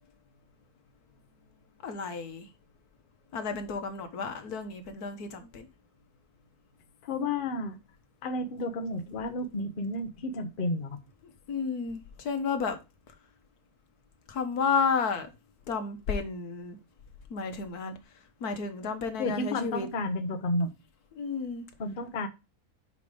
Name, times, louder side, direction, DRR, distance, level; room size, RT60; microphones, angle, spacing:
voice 1, 1.8-2.5 3.3-5.7 11.2-12.8 14.3-15.3 15.7-16.8 17.3-18.0 18.4-19.9 21.1-21.6, left 5 dB, 85° left, 1.7 m, -32 dB
voice 2, 7.0-7.8 8.2-11.0 19.2-20.7 21.8-22.3, left 2 dB, 40° left, 1.0 m, -31 dB
5.6 x 4.9 x 4.9 m
omnidirectional pair, 1.6 m